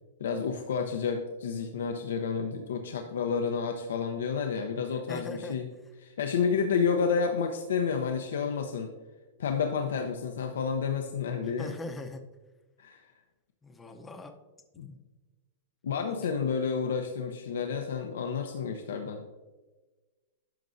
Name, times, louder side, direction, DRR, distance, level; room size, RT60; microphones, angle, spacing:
voice 1, 0.2-5.7 6.0-8.9 9.4-11.7 12.8-13.0 14.8-14.9 15.8-19.2, left 6 dB, 85° left, 4 dB, 0.7 m, -30 dB
voice 2, 5.1-5.6 11.4-12.2 13.6-14.3 14.8-15.0, left 3 dB, 10° left, 6 dB, 0.7 m, -41 dB
10.5 x 6.1 x 2.6 m, 1.2 s
hypercardioid pair, 140°, 0 cm